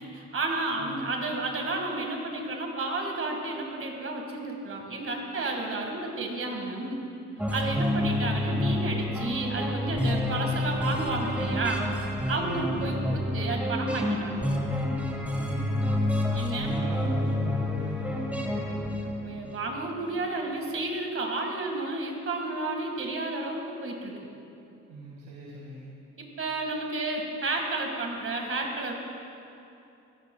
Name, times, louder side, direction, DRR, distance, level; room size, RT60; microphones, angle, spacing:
voice 1, 0.1-7.0 7.5-11.8 12.3-14.4 16.3-16.7 19.2-24.2 26.2-28.9, right 2 dB, 45° right, 1 dB, 1.8 m, -31 dB
voice 2, 0.8-1.2 12.3-12.9 15.3-16.0 16.6-18.9 24.9-25.9, right 1 dB, 75° right, -6 dB, 1.8 m, -39 dB
sound 1, 7.4-19.7, left 1 dB, 5° right, 1.4 m, -29 dB
22.5 x 9.3 x 2.3 m, 2.8 s
cardioid pair, 90°, 30 cm